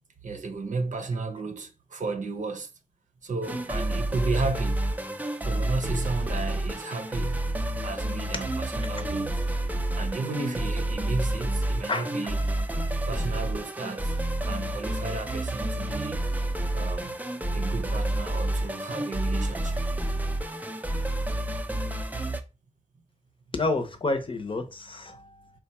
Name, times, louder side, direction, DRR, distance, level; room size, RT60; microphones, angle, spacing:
voice 1, 0.2-2.7 3.2-4.8 5.4-7.4 7.7-9.4 9.9-12.4 13.1-14.2 14.4-16.3 16.7-17.1 17.5-19.9, right 3 dB, 70° right, 0.7 m, -33 dB
sound 1, 3.4-22.4, right 1 dB, 10° right, 0.5 m, -29 dB
voice 2, 23.5-25.5, left 2 dB, 40° left, 0.8 m, -29 dB
4.5 x 2.3 x 4.1 m
wide cardioid pair, 90°, 13 cm